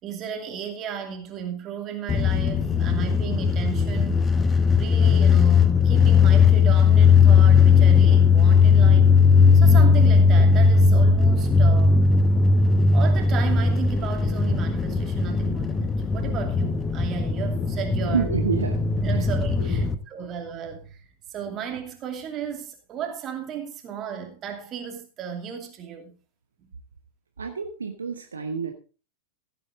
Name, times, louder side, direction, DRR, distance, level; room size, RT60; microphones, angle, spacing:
voice 1, 0.0-4.3 4.8-9.1 9.5-12.0 12.9-18.3 19.0-26.1, right 8 dB, 30° right, 2.6 m, -34 dB
space-ship-take-off-from-inside-vessel, 2.1-19.9, left 5 dB, 15° left, 1.0 m, -18 dB
voice 2, 18.0-18.8 19.1-19.2 19.6-19.9 27.4-28.7, right 5 dB, 75° right, 1.2 m, -29 dB
15.0 x 8.6 x 3.6 m
figure-of-eight pair, 90°, 0 cm